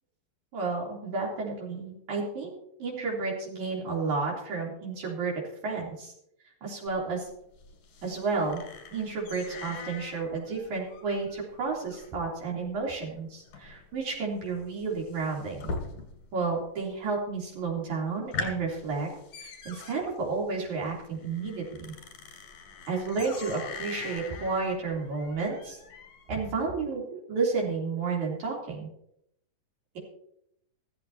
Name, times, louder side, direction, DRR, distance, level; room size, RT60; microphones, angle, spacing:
voice 1, 0.5-2.5 2.8-6.1 6.6-7.3 8.0-8.6 8.9-15.7 16.3-19.1 19.4-21.9 22.9-25.8 26.3-28.9, right 4 dB, 65° right, -2 dB, 4.7 m, -31 dB
sound 1, 6.9-16.4 16.7-17.3 17.7-17.8 18.1-26.4, left 4 dB, 90° left, 4.1 m, -42 dB
15.5 x 14.5 x 2.8 m, 0.74 s
omnidirectional pair, 3.8 m